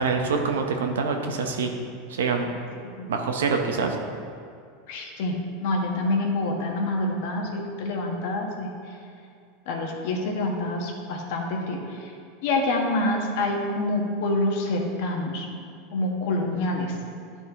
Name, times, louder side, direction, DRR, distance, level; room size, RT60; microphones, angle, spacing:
voice 1, 0.0-1.7 2.1-2.5 3.1-4.0, right 4 dB, 85° right, 4 dB, 0.9 m, -25 dB
voice 2, 4.9-8.9 9.7-12.1 12.4-15.5 15.9-16.9, left 2 dB, 65° left, 1 dB, 1.3 m, -27 dB
11.0 x 4.3 x 3.6 m, 2.3 s
hypercardioid pair, 100°, 0 cm